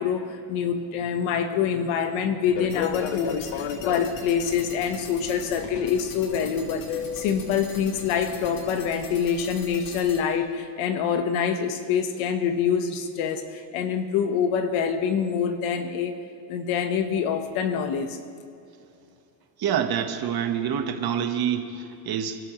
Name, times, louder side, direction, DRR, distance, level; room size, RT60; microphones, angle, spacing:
voice 1, 0.0-16.1 16.5-18.2, left 7 dB, 85° left, 7 dB, 1.4 m, -26 dB
Fixed-wing aircraft airplane, 2.5-8.9, left 8 dB, 65° left, 1.1 m, -35 dB
sound 1, 2.7-10.2, left 4 dB, 45° left, 2.3 m, -43 dB
voice 2, 19.6-22.4, right 8 dB, 50° right, 5 dB, 1.5 m, -26 dB
28.5 x 13.0 x 3.2 m, 2.6 s
cardioid pair, 130°, 48 cm